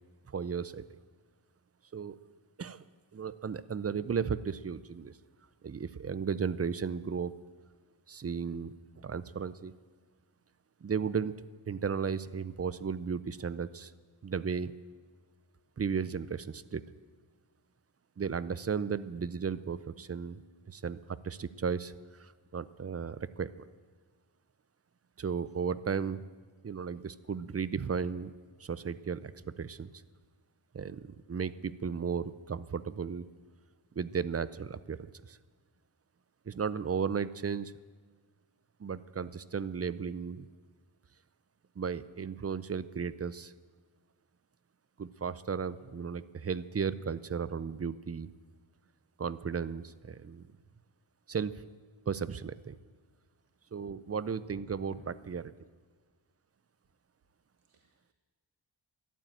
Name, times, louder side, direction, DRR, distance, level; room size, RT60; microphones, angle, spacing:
voice 1, 0.3-0.8 1.9-2.2 2.6-2.8 3.1-5.1 5.6-7.3 8.1-9.7 10.8-11.3 11.7-13.9 14.2-14.7 15.8-16.8 18.2-20.4 20.7-21.9 22.2-23.6 25.2-26.3 26.6-28.3 28.6-29.9 30.7-33.2 34.0-35.0 35.2-35.4 36.5-37.7 38.8-40.5 41.8-43.5 45.0-48.3 49.2-50.4 51.3-51.6 52.1-52.7 53.7-55.5, right 6 dB, 30° right, 16 dB, 0.5 m, -35 dB
voice 2, 54.4-55.4 57.7-58.1, right 2 dB, 80° right, 3 dB, 1.6 m, -56 dB
13.5 x 12.0 x 9.0 m, 1.5 s
wide cardioid pair, 110°, 49 cm